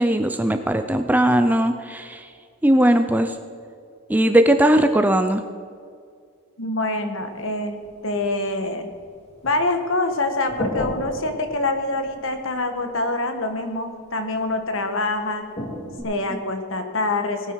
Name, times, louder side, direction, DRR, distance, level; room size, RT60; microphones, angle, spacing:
voice 1, 0.0-2.3 2.6-3.3 4.1-5.4 16.3-16.4, right 1 dB, 5° right, 8 dB, 0.5 m, -18 dB
voice 2, 6.6-8.9 9.4-15.4 16.0-17.5, left 2 dB, 60° left, 7 dB, 1.4 m, -25 dB
sound 1, 7.2-8.4 8.9-9.8 10.1-13.0 14.4-14.5 15.6-16.0, equal, 30° left, 2.2 m, -34 dB
19.5 x 9.3 x 4.7 m, 2.2 s
head